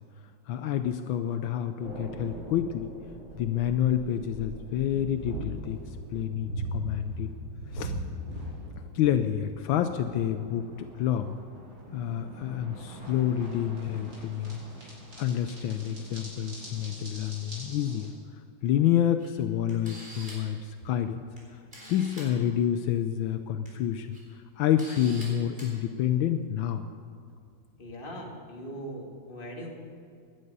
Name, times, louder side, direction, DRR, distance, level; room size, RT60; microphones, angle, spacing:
voice 1, 0.5-2.9 3.3-5.8 6.1-7.3 7.7-7.9 8.9-11.4 11.9-14.6 15.2-18.1 18.6-21.2 21.9-24.2 24.6-26.9, left 10 dB, 80° left, 9 dB, 1.4 m, -28 dB
sound 1, 1.8-18.1, right 1 dB, 65° right, 5.6 m, -41 dB
Camera, 19.2-19.3 19.7-20.5 21.4-21.5 21.7-22.3 23.4-23.7 24.1-24.2 24.8-25.3 25.6-25.7, right 1 dB, 25° right, 4.5 m, -45 dB
voice 2, 27.8-29.7, equal, 25° left, -1 dB, 2.1 m, -40 dB
18.0 x 11.0 x 5.4 m, 2.4 s
omnidirectional pair, 2.2 m